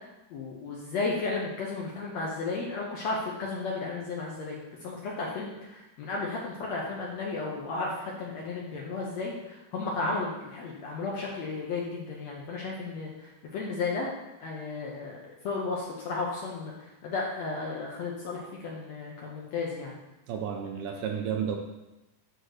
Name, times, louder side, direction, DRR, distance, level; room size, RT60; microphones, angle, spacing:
voice 1, 0.3-14.1 14.4-16.7 17.0-20.0, left 3 dB, 70° left, -3 dB, 1.7 m, -34 dB
voice 2, 20.3-21.6, right 8 dB, 75° right, 3 dB, 2.1 m, -32 dB
9.1 x 3.1 x 6.4 m, 1.0 s
omnidirectional pair, 4.0 m